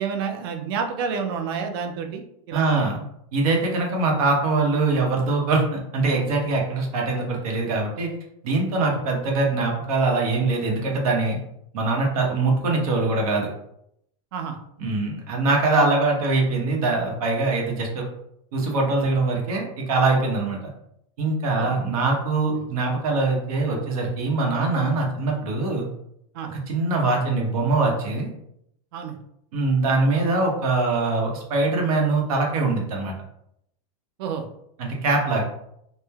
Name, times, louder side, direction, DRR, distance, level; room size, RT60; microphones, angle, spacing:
voice 1, 0.0-3.0 8.8-8.9 14.3-14.6 21.6-21.8 26.3-26.5 28.9-29.2 34.2-34.4, right 6 dB, 40° right, 4 dB, 0.4 m, -29 dB
voice 2, 2.5-3.0 3.3-8.1 8.4-11.4 11.7-13.5 14.8-18.0 18.5-20.6 21.2-25.9 26.4-28.3 29.5-33.1 34.8-35.4, right 3 dB, 75° right, 0 dB, 0.8 m, -23 dB
3.0 x 2.0 x 2.2 m, 0.75 s
supercardioid pair, 170°, 18 cm